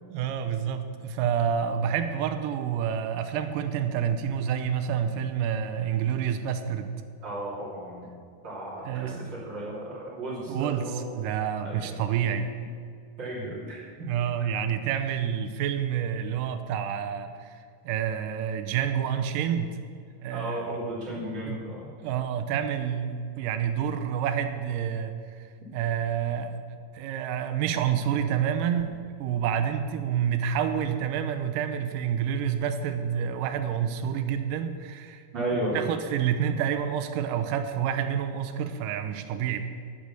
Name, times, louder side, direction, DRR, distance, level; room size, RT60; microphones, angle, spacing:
voice 1, 0.1-6.9 8.8-9.3 10.5-12.5 14.0-17.6 17.8-19.7 20.2-20.7 21.1-21.6 22.0-25.2 25.7-26.6 26.9-35.2 35.7-39.6, right 8 dB, 75° right, 8 dB, 2.2 m, -28 dB
voice 2, 7.2-8.0 8.4-11.2 11.6-11.9 13.2-14.1 20.3-21.9 35.3-35.8, right 1 dB, 30° right, -6 dB, 3.3 m, -34 dB
9.8 x 9.4 x 6.8 m, 2.2 s
omnidirectional pair, 4.3 m